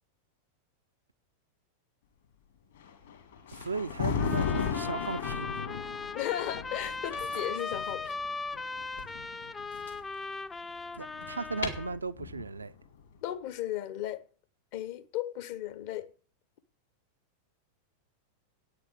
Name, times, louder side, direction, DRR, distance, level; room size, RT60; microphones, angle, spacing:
Thunder, 2.8-10.0 11.0-12.8, left 6 dB, 65° left, 2.7 m, -36 dB
sound 1, 3.5-5.4 6.8-8.2 8.9-10.2 10.6-11.7, left 4 dB, 80° left, 3.2 m, -45 dB
voice 1, 3.5-5.6 11.0-12.7, right 4 dB, 75° right, 0.5 m, -36 dB
sound 2, 4.2-12.0, left 3 dB, 15° left, 0.5 m, -38 dB
voice 2, 6.1-8.1 13.2-14.3 14.7-16.1, left 13 dB, 50° left, 0.9 m, -35 dB
9.4 x 6.7 x 8.7 m
figure-of-eight pair, 90°, 0 cm